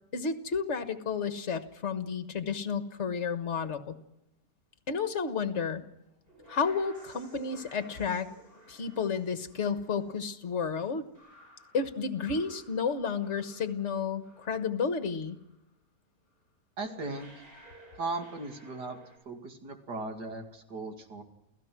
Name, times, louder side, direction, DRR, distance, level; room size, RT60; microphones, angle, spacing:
voice 1, 0.1-4.0 4.9-5.8 6.5-8.3 8.7-11.0 11.7-15.4, left 5 dB, 45° left, 9 dB, 1.7 m, -31 dB
sound 1, 6.0-14.9 15.2-15.6 16.4-16.5 16.8-19.2, right 1 dB, 35° right, 7.4 m, -56 dB
voice 2, 16.8-17.3 18.0-19.0 19.3-21.2, right 3 dB, 85° right, 4 dB, 3.0 m, -37 dB
29.5 x 16.5 x 6.1 m, 0.90 s
omnidirectional pair, 1.7 m